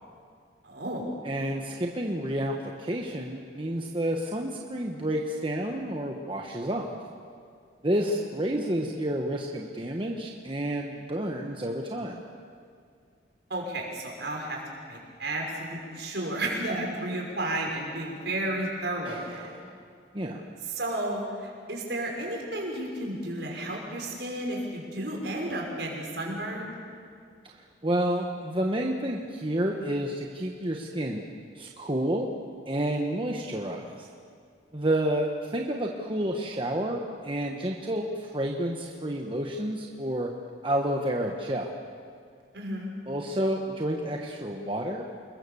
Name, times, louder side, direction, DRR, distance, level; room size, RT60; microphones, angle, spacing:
voice 1, 0.6-1.1 13.5-14.6 14.8-19.5 20.7-26.7 42.5-42.9, right 1 dB, 70° right, 0 dB, 5.8 m, -32 dB
voice 2, 1.2-7.0 7.8-12.2 19.0-19.7 20.1-20.4 27.5-31.2 31.5-32.3 32.6-34.1 34.7-40.3 40.6-41.7 43.1-45.1, right 1 dB, 30° right, 1 dB, 1.3 m, -30 dB
27.5 x 22.0 x 7.1 m, 2.2 s
head